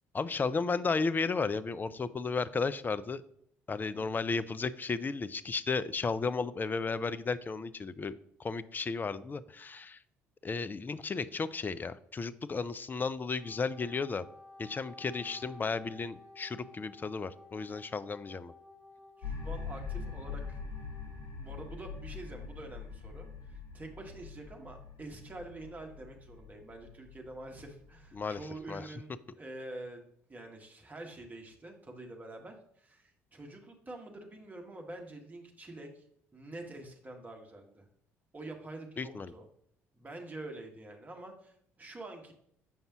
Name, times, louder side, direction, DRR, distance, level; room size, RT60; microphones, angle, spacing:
voice 1, 0.1-3.2 3.7-8.1 8.4-10.0 10.4-14.2 14.6-18.5 28.1-28.4 28.7-28.9 39.0-39.3, left 4 dB, 25° left, 14 dB, 0.4 m, -34 dB
voice 2, 3.9-4.3 15.2-15.6 17.6-17.9 19.2-20.6 21.3-36.0 36.3-37.9 38.3-39.5 39.9-42.3, right 2 dB, 20° right, 2 dB, 1.4 m, -47 dB
Wind instrument woodwind instrument, 13.3-21.3, left 2 dB, 75° left, 1.4 m, -54 dB
sound 1, 19.2-28.6, left 5 dB, 55° left, 2.6 m, -43 dB
7.1 x 5.2 x 2.9 m, 0.67 s
figure-of-eight pair, 50°, 7 cm